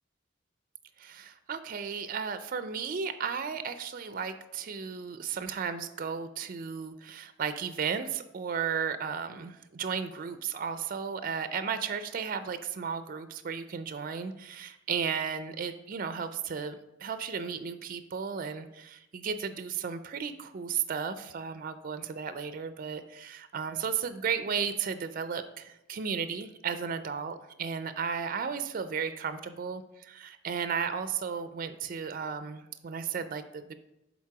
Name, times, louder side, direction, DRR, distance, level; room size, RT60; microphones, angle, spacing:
voice 1, 1.0-33.8, right 6 dB, 45° right, 11 dB, 0.4 m, -34 dB
7.3 x 4.0 x 4.7 m, 0.89 s
head